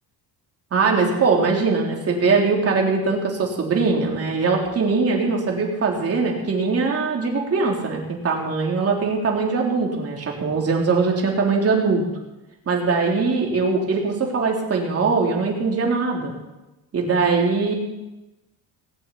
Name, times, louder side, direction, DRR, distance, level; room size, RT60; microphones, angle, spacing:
voice 1, 0.7-12.0 12.7-16.3 16.9-17.7, right 4 dB, 40° right, -1 dB, 3.6 m, -21 dB
18.5 x 8.6 x 8.5 m, 1.0 s
cardioid pair, 140°, 38 cm